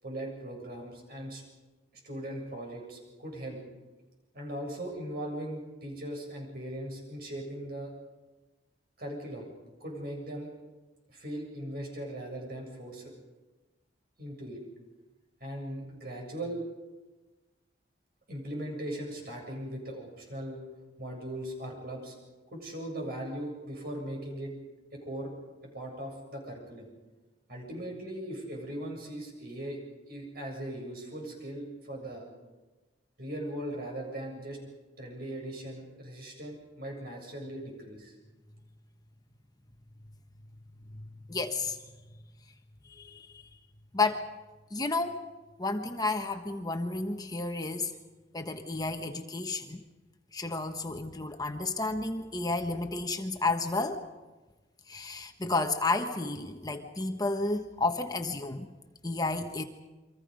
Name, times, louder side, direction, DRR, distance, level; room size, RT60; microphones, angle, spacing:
voice 1, 0.0-1.4 2.0-3.6 4.3-7.9 9.0-9.5 9.8-10.5 11.1-13.1 14.2-14.6 15.4-16.6 18.3-20.6 21.0-22.1 22.5-24.5 24.9-25.3 25.7-26.9 27.5-29.8 30.1-32.3 33.2-34.6 35.0-38.1, right 1 dB, 55° right, 1 dB, 7.7 m, -39 dB
voice 2, 40.9-41.8 42.9-43.4 43.9-44.3 44.7-45.2 45.6-47.9 48.3-49.8 50.3-54.0 54.9-58.7 59.0-59.6, left 3 dB, 20° left, 5 dB, 1.2 m, -31 dB
29.0 x 24.0 x 5.3 m, 1.2 s
head